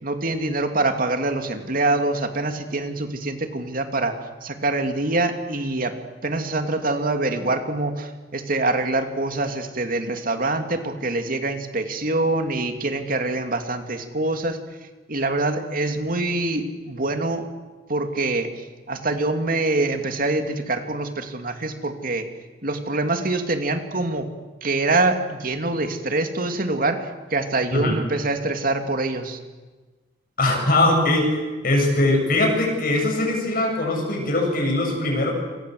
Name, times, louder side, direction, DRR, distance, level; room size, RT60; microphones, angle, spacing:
voice 1, 0.0-4.1 4.4-5.9 6.2-14.6 15.1-17.5 17.9-22.3 22.6-24.3 24.6-29.4, right 2 dB, 50° right, 6 dB, 2.8 m, -25 dB
voice 2, 30.4-35.3, left 2 dB, 55° left, 1 dB, 8.0 m, -21 dB
29.0 x 26.0 x 8.0 m, 1.3 s
head